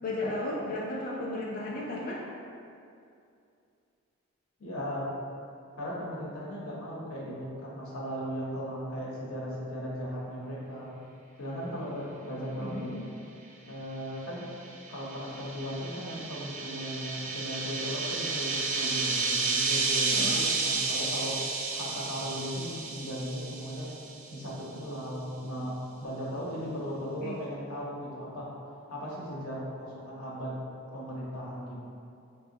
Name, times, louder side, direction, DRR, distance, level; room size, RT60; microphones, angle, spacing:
voice 1, 0.0-2.2 12.5-12.9 20.1-20.4 27.2-27.4, left 1 dB, 40° left, -4 dB, 0.3 m, -34 dB
voice 2, 4.6-5.1 5.8-10.9 11.4-13.0 13.6-14.5 14.9-21.4 21.7-23.9 24.3-28.5 28.9-30.5 30.9-31.8, equal, 90° left, -5 dB, 0.8 m, -37 dB
sound 1, 14.4-24.2, right 4 dB, 40° right, 0.4 m, -31 dB
4.4 x 2.2 x 2.7 m, 2.5 s
head